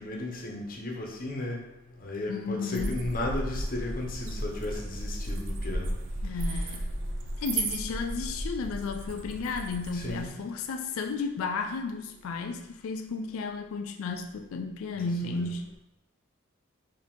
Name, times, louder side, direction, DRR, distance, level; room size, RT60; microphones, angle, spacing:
voice 1, 0.0-1.6 2.0-6.0 6.3-6.7 9.9-10.3 14.9-15.5, left 2 dB, 40° left, 0 dB, 0.7 m, -35 dB
voice 2, 2.3-2.9 6.2-6.9 7.4-15.6, left 4 dB, 75° left, 6 dB, 0.3 m, -33 dB
sound 1, 2.7-10.3, right 1 dB, 60° right, 0.5 m, -34 dB
4.8 x 2.7 x 3.6 m, 0.90 s
head